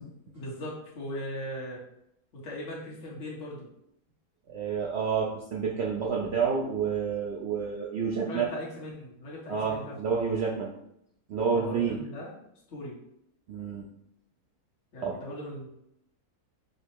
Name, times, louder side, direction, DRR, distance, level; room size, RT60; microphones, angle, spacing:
voice 1, 0.3-1.8 2.3-3.7 8.2-10.2 11.5-12.3 12.7-13.0 14.9-15.7, equal, 55° left, -6 dB, 1.5 m, -39 dB
voice 2, 4.5-8.5 9.5-10.7 11.3-12.0 13.5-13.8 15.0-15.1, right 6 dB, 65° right, -3 dB, 0.7 m, -29 dB
5.2 x 2.0 x 4.5 m, 0.78 s
omnidirectional pair, 1.6 m